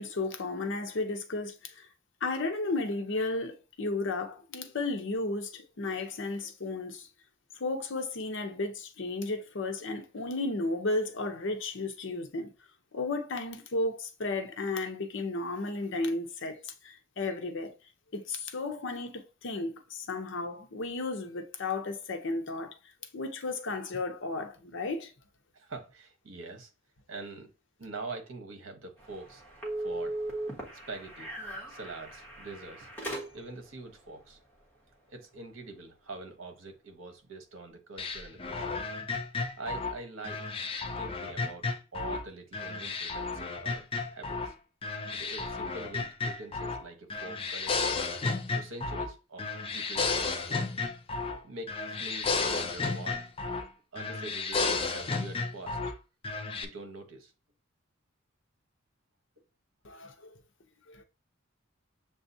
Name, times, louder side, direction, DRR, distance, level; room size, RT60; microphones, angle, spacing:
voice 1, 0.0-1.9 2.2-7.1 7.6-12.5 12.9-17.7 18.1-22.7 23.1-25.1 59.8-60.3 60.9-61.0, left 2 dB, 65° left, 0.7 m, -34 dB
voice 2, 25.5-26.7 27.1-27.5 27.8-29.4 29.8-30.2 30.9-31.3 31.7-32.9 33.3-34.4 35.1-38.8 39.6-40.4 40.9-41.6 41.9-43.8 44.1-44.5 45.1-48.1 48.5-50.6 51.4-53.2 53.9-55.8 56.6-57.3, right 3 dB, 75° right, 1.0 m, -44 dB
sound 1, 29.0-33.7, right 1 dB, 10° left, 1.3 m, -38 dB
sound 2, 38.0-42.2 42.5-44.5 44.8-46.8 47.1-49.1 49.4-51.4 51.7-53.7 54.0-55.9 56.2-56.6, left 4 dB, 30° left, 0.4 m, -33 dB
6.9 x 2.4 x 2.7 m
head